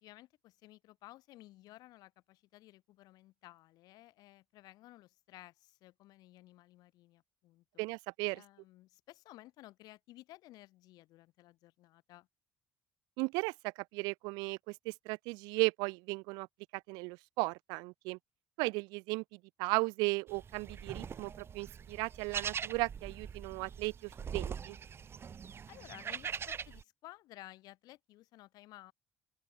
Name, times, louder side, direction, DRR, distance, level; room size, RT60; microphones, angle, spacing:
voice 1, 0.0-7.8 8.3-12.3 25.7-28.9, left 17 dB, 75° left, 1.4 m, -56 dB
voice 2, 7.8-8.4 13.2-16.5 16.7-18.2 18.6-24.8, right 28 dB, 85° right, 0.6 m, -36 dB
sound 1, 20.3-26.8, right 7 dB, 35° right, 0.5 m, -42 dB
open air
supercardioid pair, 80°, 7 cm